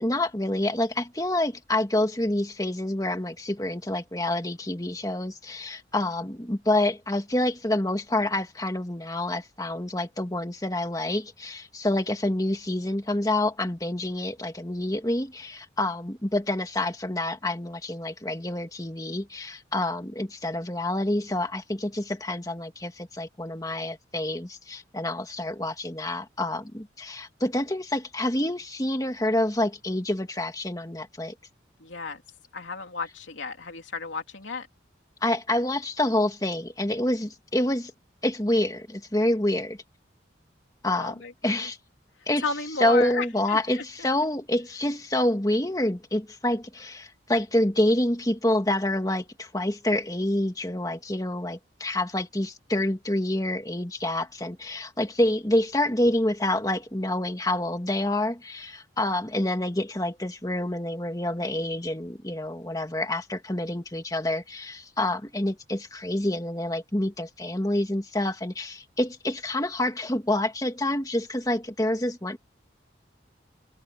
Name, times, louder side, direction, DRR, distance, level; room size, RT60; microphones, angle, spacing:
voice 1, 0.0-31.3 35.2-37.9 38.2-39.8 40.8-41.2 41.4-41.8 42.3-42.4 42.8-72.4, left 1 dB, 20° left, 1.9 m, -27 dB
voice 2, 31.8-32.2 32.5-34.7 41.0-41.7 42.4-44.1, left 4 dB, 90° left, 3.1 m, -33 dB
open air
head